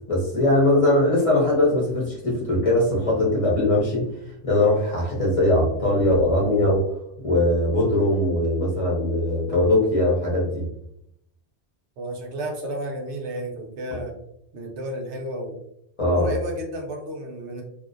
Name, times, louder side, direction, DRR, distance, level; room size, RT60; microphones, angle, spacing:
voice 1, 0.1-4.1 4.4-6.8 7.2-10.6 16.0-16.3, left 1 dB, 35° left, -4 dB, 0.6 m, -20 dB
voice 2, 12.0-14.1 14.5-15.6 16.0-17.6, right 1 dB, 85° right, 2 dB, 0.9 m, -32 dB
2.5 x 2.0 x 2.4 m, 0.73 s
omnidirectional pair, 1.2 m